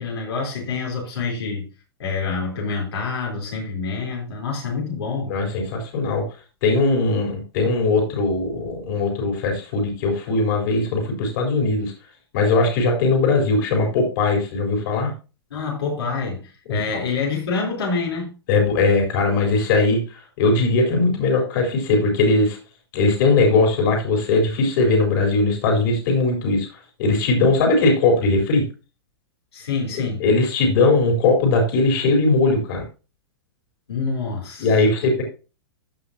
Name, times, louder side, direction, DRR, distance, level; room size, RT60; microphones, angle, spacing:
voice 1, 0.0-1.7 2.0-5.3 15.5-18.3 29.5-30.2 33.9-34.7, left 4 dB, 80° left, 3.8 m, -27 dB
voice 2, 5.3-6.2 6.6-11.9 12.3-15.1 16.7-17.0 18.5-20.0 20.4-22.6 22.9-26.7 27.0-28.6 30.2-32.8 34.6-35.2, left 3 dB, 55° left, 4.1 m, -19 dB
14.5 x 6.0 x 2.8 m
hypercardioid pair, 115°, 13 cm